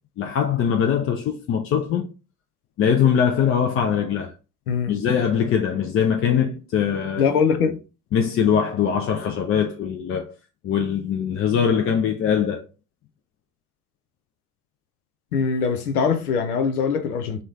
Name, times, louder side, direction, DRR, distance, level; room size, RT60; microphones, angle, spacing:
voice 1, 0.2-2.1 2.8-4.3 4.9-7.3 8.1-10.3 10.6-12.7, left 8 dB, 30° left, 0.4 m, -22 dB
voice 2, 7.2-7.8 15.3-17.4, left 6 dB, 85° left, 0.6 m, -22 dB
3.0 x 2.2 x 3.5 m
figure-of-eight pair, 55°, 44 cm